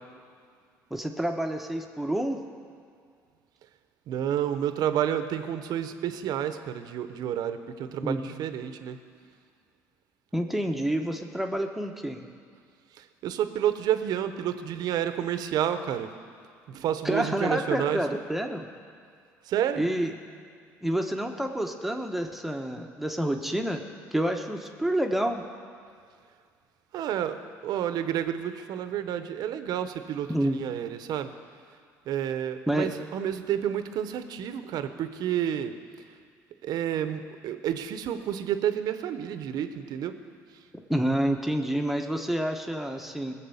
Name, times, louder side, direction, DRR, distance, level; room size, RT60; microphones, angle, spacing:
voice 1, 0.9-2.4 8.0-8.3 10.3-12.2 17.0-18.7 19.8-20.1 20.8-23.8 24.1-25.5 30.3-30.7 32.7-32.9 40.9-43.3, right 1 dB, 5° right, 3 dB, 1.2 m, -28 dB
voice 2, 4.1-9.0 13.0-16.1 16.7-18.0 19.5-19.9 26.9-31.3 32.1-35.8 36.6-40.2, right 10 dB, 65° right, 10 dB, 1.0 m, -30 dB
19.5 x 7.4 x 7.2 m, 2.2 s
supercardioid pair, 75°, 7 cm